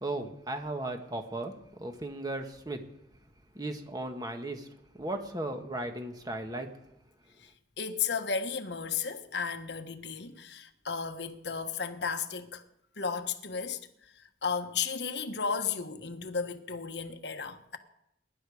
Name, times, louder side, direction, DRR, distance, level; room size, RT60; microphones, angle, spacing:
voice 1, 0.0-1.5 1.8-2.8 3.5-4.7 5.0-6.7, right 2 dB, 20° right, 1.6 m, -36 dB
voice 2, 7.8-12.6 13.0-17.8, left 5 dB, 65° left, 1.3 m, -34 dB
22.5 x 11.5 x 5.0 m
head